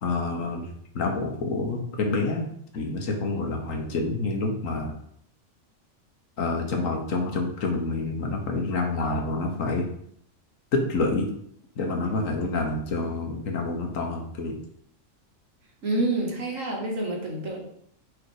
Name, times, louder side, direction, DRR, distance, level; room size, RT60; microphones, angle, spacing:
voice 1, 0.0-5.0 6.4-9.9 10.7-11.3 11.8-14.6, left 3 dB, 75° left, 3 dB, 1.5 m, -28 dB
voice 2, 15.8-17.6, right 2 dB, 75° right, -2 dB, 2.0 m, -27 dB
5.1 x 5.0 x 4.8 m, 0.69 s
omnidirectional pair, 1.4 m